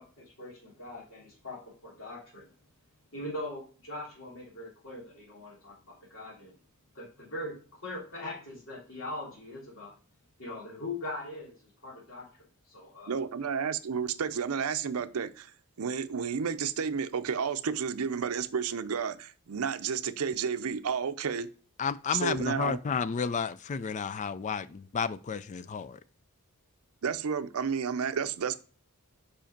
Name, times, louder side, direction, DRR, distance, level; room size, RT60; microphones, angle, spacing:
voice 1, 0.0-2.5 3.1-6.5 6.9-9.9 10.4-12.3 12.7-13.2, left 1 dB, 65° left, 3.1 m, -41 dB
voice 2, 13.1-15.5 15.8-21.5 22.1-22.8 27.0-28.5, right 6 dB, 75° right, 0.5 m, -31 dB
voice 3, 21.8-26.0, left 6 dB, 35° left, 0.3 m, -32 dB
5.1 x 5.0 x 5.1 m
head